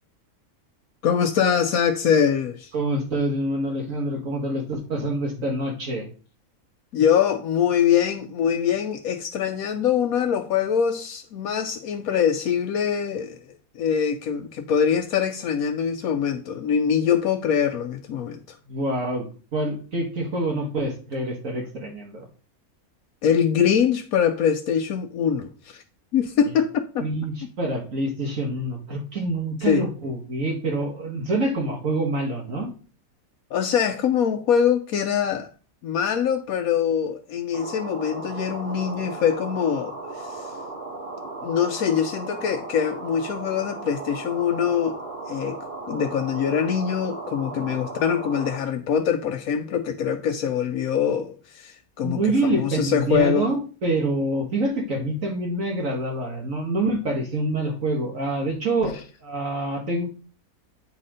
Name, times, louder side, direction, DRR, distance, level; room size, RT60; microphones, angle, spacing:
voice 1, 1.0-2.7 6.9-13.4 13.7-18.6 23.2-25.8 26.1-27.1 29.6-29.8 33.5-35.5 35.8-40.5 41.4-45.0 45.3-45.6 45.9-53.5, left 8 dB, 80° left, 1.1 m, -23 dB
voice 2, 2.7-6.1 18.7-19.3 19.5-22.3 27.0-32.7 47.7-47.8 52.0-60.0, right 1 dB, 65° right, 1.9 m, -26 dB
sound 1, 37.5-48.6, right 2 dB, 40° right, 2.1 m, -36 dB
9.0 x 4.2 x 5.0 m
omnidirectional pair, 1.5 m